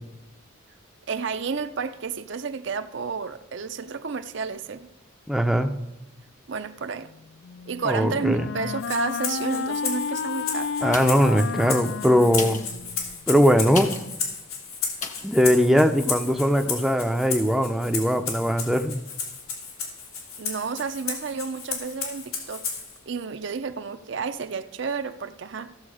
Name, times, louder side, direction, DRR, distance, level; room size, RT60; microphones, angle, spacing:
voice 1, 1.1-4.9 6.5-7.1 7.7-10.7 20.4-22.7 23.1-25.7, right 5 dB, 55° right, 0.5 m, -31 dB
voice 2, 5.3-5.7 7.8-8.5 10.8-12.6 13.3-13.9 15.2-19.0, equal, ahead, 0.5 m, -20 dB
Wind instrument woodwind instrument, 7.4-13.2, left 6 dB, 60° left, 0.3 m, -32 dB
Rattle (instrument), 8.8-23.0, left 5 dB, 90° left, 2.9 m, -34 dB
sound 1, 10.9-11.4 12.2-14.2 15.0-15.4 15.9-16.0, left 5 dB, 35° left, 1.0 m, -35 dB
15.5 x 7.1 x 4.9 m
head